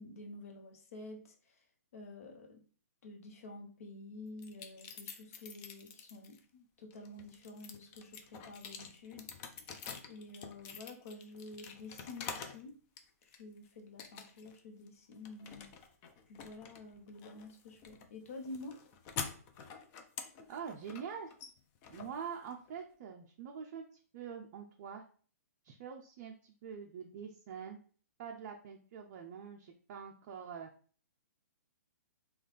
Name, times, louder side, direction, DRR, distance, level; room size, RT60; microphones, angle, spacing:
voice 1, 0.0-1.6 1.9-2.6 3.0-9.3 10.1-12.8 13.2-15.7 16.3-18.8, left 2 dB, 60° left, 4 dB, 0.9 m, -49 dB
sound 1, 4.4-6.4 6.9-12.6 13.0-13.6 14.0-14.6 14.9-22.8, left 6 dB, 20° left, 0.4 m, -47 dB
voice 2, 20.5-21.3 21.9-23.8 24.1-25.0 25.6-27.8 28.2-30.7, right 7 dB, 35° right, 2 dB, 0.5 m, -45 dB
3.8 x 2.4 x 3.2 m, 0.42 s
hypercardioid pair, 155°, 9 cm